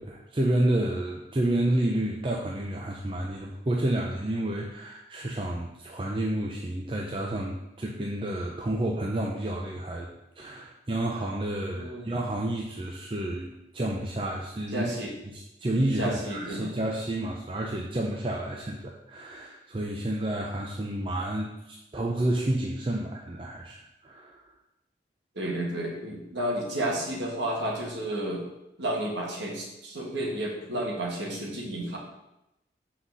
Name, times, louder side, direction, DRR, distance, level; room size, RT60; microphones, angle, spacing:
voice 1, 0.0-10.1 10.4-13.5 13.7-14.9 15.3-24.4, right 1 dB, 30° right, -1 dB, 0.5 m, -30 dB
voice 2, 11.7-12.1 14.7-15.1 16.0-16.7 25.3-28.4 28.8-32.0, right 1 dB, 80° right, -1 dB, 1.6 m, -31 dB
6.0 x 4.0 x 6.1 m, 0.90 s
head